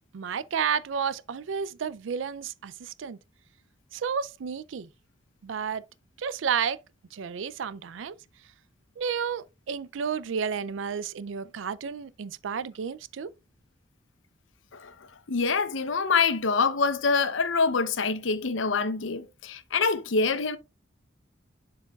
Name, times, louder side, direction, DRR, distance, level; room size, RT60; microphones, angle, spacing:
voice 1, 0.1-3.2 3.9-4.9 5.4-5.9 6.2-6.8 7.1-8.1 9.0-13.3, right 7 dB, 85° right, 0.4 m, -31 dB
voice 2, 15.3-20.6, left 4 dB, 90° left, 0.7 m, -25 dB
10.5 x 4.7 x 2.3 m
head